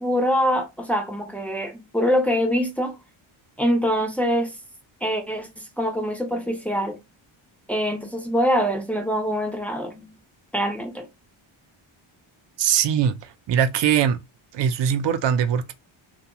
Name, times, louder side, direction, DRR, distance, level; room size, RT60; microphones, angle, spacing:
voice 1, 0.0-3.0 3.6-4.5 5.0-7.0 7.7-10.1 10.5-11.1, equal, 5° left, 0.3 m, -24 dB
voice 2, 12.6-14.2 14.5-15.7, right 8 dB, 60° right, 0.5 m, -21 dB
2.5 x 2.2 x 2.8 m
wide cardioid pair, 155°, 49 cm